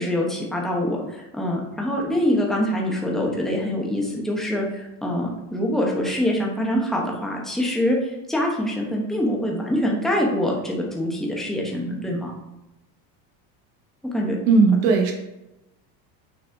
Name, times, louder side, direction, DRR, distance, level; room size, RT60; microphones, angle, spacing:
voice 1, 0.0-12.3 14.1-14.4, left 1 dB, ahead, -2 dB, 1.0 m, -24 dB
voice 2, 14.5-15.1, right 4 dB, 80° right, 2 dB, 1.1 m, -16 dB
6.5 x 4.2 x 3.5 m, 0.93 s
cardioid pair, 150°, 44 cm